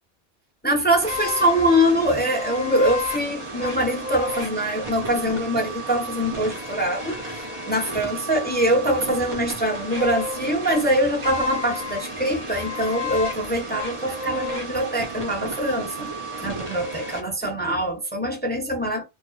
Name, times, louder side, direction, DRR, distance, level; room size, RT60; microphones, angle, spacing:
voice 1, 0.6-16.1 16.4-19.0, equal, 10° left, 0.7 m, -23 dB
sound 1, 1.0-17.2, left 1 dB, 35° right, 0.7 m, -32 dB
2.4 x 2.3 x 2.3 m
omnidirectional pair, 1.1 m